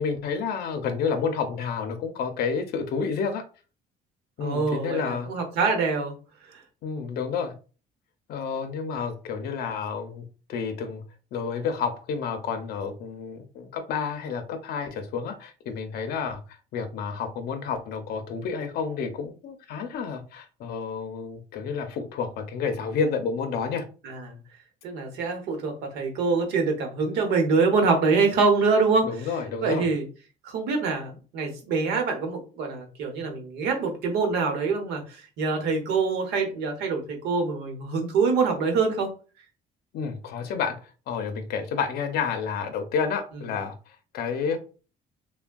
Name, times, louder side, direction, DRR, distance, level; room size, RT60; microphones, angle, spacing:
voice 1, 0.0-3.4 4.4-5.3 6.8-7.5 8.3-10.2 10.5-11.0 11.3-23.9 29.0-29.9 39.9-44.6, left 5 dB, 65° left, 7 dB, 0.5 m, -30 dB
voice 2, 4.4-6.1 24.0-24.3 24.8-29.1 29.6-30.0 30.4-39.1, right 4 dB, 90° right, 4 dB, 0.9 m, -25 dB
3.3 x 2.2 x 2.2 m, 0.35 s
cardioid pair, 110°, 17 cm